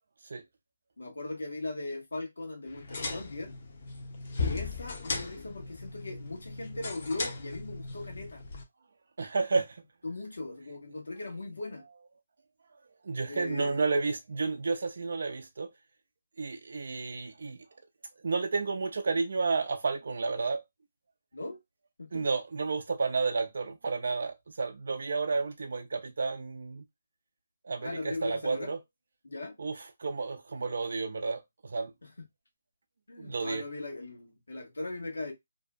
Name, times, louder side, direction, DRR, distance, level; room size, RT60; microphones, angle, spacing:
voice 1, 1.0-3.5 4.4-8.4 10.0-11.8 13.3-13.8 21.3-21.6 22.0-22.3 27.8-28.7 29.2-29.6 32.0-32.2 33.1-35.3, left 2 dB, 85° left, 1.1 m, -39 dB
sound 1, 2.7-8.6, left 4 dB, 55° left, 0.7 m, -37 dB
voice 2, 9.2-9.8 13.0-15.7 16.4-17.6 18.2-20.6 22.1-26.8 27.6-28.8 29.6-31.9 33.2-33.6, right 4 dB, 65° right, 0.3 m, -31 dB
2.6 x 2.2 x 2.4 m
hypercardioid pair, 155°, 0 cm